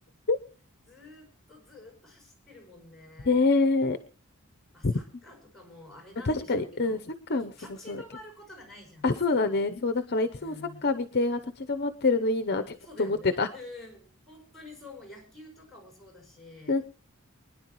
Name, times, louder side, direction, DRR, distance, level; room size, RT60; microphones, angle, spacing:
voice 1, 0.9-3.4 4.7-7.0 7.6-9.2 9.5-9.6 10.4-10.8 12.8-16.8, left 2 dB, ahead, 2 dB, 5.6 m, -48 dB
voice 2, 3.3-4.0 4.8-4.9 6.3-7.0 7.3-7.5 7.9-8.0 9.0-10.5 10.8-13.5 16.7-16.8, left 3 dB, 50° left, 9 dB, 0.8 m, -26 dB
24.0 x 10.5 x 3.1 m, 0.37 s
head